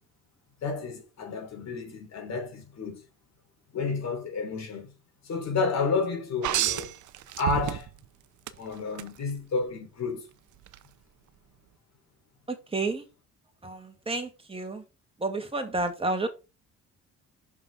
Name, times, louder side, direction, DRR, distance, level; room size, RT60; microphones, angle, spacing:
voice 1, 0.6-3.0 3.7-4.9 5.2-6.9 7.4-7.9 8.6-10.2, left 4 dB, 60° left, 3.5 m, -30 dB
sound 1, 6.4-8.0 8.5-9.1 10.7-10.8, right 13 dB, 80° right, 0.8 m, -29 dB
voice 2, 12.5-13.0 13.6-14.8 15.2-16.3, right 2 dB, 20° right, 2.4 m, -30 dB
6.1 x 5.4 x 4.8 m
cardioid pair, 90°, 30 cm